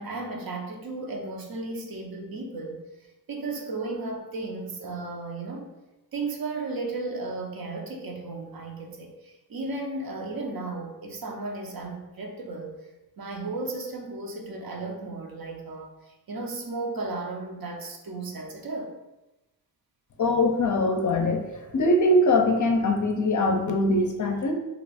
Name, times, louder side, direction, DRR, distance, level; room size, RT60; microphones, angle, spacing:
voice 1, 0.0-2.8 3.3-5.7 6.1-12.8 13.2-16.0 16.3-18.9, right 3 dB, 60° right, 1 dB, 0.7 m, -34 dB
voice 2, 20.2-24.5, left 1 dB, 45° left, 3 dB, 0.5 m, -22 dB
2.9 x 2.2 x 4.0 m, 1.0 s
wide cardioid pair, 105°, 41 cm